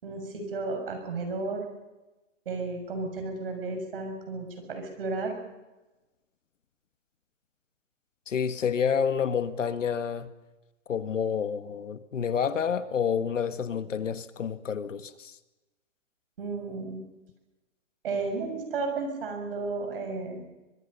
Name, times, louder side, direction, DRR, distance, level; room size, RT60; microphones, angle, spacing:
voice 1, 0.0-1.6 2.5-5.4 16.4-17.0 18.0-20.4, right 3 dB, 45° right, 6.9 m, -33 dB
voice 2, 8.3-10.3 10.9-15.4, left 7 dB, 75° left, 1.8 m, -29 dB
24.0 x 23.0 x 5.6 m
hypercardioid pair, 170°, 38 cm